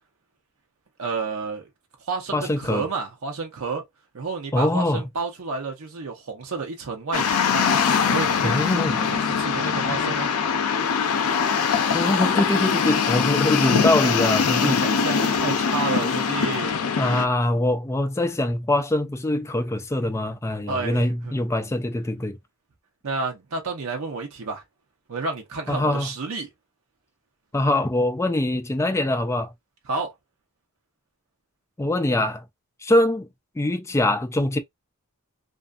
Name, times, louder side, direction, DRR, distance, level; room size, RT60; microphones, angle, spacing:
voice 1, 1.0-1.7 2.1-3.8 4.1-7.7 8.0-10.3 14.6-16.8 20.7-21.5 23.0-24.6 25.1-26.5 29.9-30.1, right 4 dB, 70° right, 0.7 m, -30 dB
voice 2, 2.3-2.8 4.5-5.0 8.4-9.0 11.9-14.9 17.0-22.4 25.7-26.1 27.5-29.5 31.8-32.4 32.8-33.3 33.6-34.6, left 1 dB, 10° left, 0.3 m, -23 dB
sound 1, 7.1-17.3, left 6 dB, 80° left, 0.5 m, -22 dB
2.5 x 2.5 x 2.3 m
head